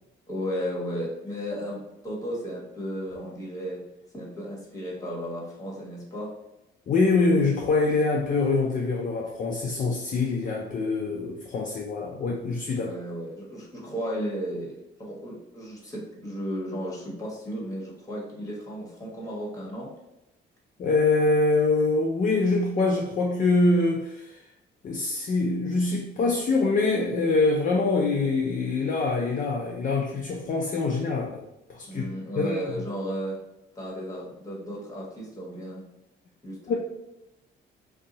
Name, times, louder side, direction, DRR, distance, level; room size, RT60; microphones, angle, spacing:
voice 1, 0.3-3.8 4.1-6.3 12.8-19.9 31.8-33.4 33.7-35.8 36.4-36.8, equal, 15° left, -4 dB, 1.2 m, -34 dB
voice 2, 6.9-12.9 20.8-24.4 24.8-31.4 31.7-32.0 32.4-32.8 36.7-36.8, left 3 dB, 40° left, 0 dB, 0.4 m, -24 dB
2.6 x 2.0 x 3.8 m, 0.90 s
cardioid pair, 90°, 20 cm